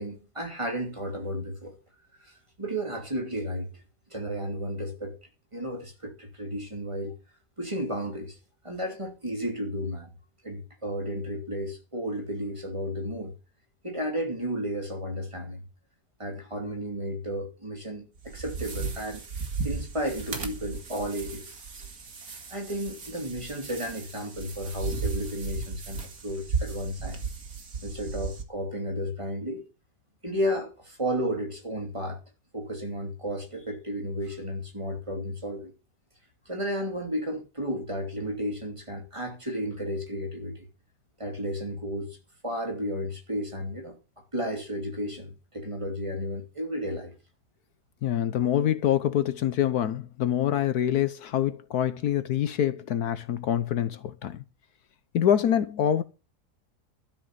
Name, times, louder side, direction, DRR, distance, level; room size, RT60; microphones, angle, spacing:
voice 1, 0.0-1.8 2.2-3.8 4.1-5.2 5.5-7.1 7.6-8.4 8.6-10.1 10.4-13.3 13.8-15.6 16.2-19.2 19.6-21.6 22.5-27.2 27.8-29.7 30.2-32.2 32.5-35.7 36.4-40.7 41.2-42.2 42.4-47.2, equal, 20° right, 2.9 m, -33 dB
sound 1, 18.2-28.4, right 5 dB, 65° right, 2.4 m, -35 dB
voice 2, 48.0-54.4 55.1-56.0, left 10 dB, 70° left, 1.3 m, -25 dB
12.5 x 6.7 x 8.0 m
omnidirectional pair, 1.7 m